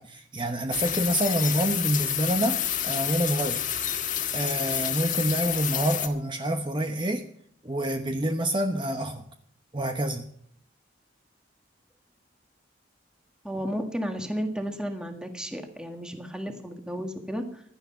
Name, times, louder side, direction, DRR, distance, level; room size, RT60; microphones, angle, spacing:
voice 1, 0.0-3.6 4.3-7.2 7.6-9.2 9.7-10.3, right 1 dB, 25° right, 6 dB, 0.9 m, -27 dB
sound 1, 0.7-6.1, left 10 dB, 45° left, 1.6 m, -29 dB
voice 2, 13.4-17.6, equal, 5° right, 4 dB, 1.7 m, -33 dB
16.0 x 12.0 x 5.6 m, 0.64 s
head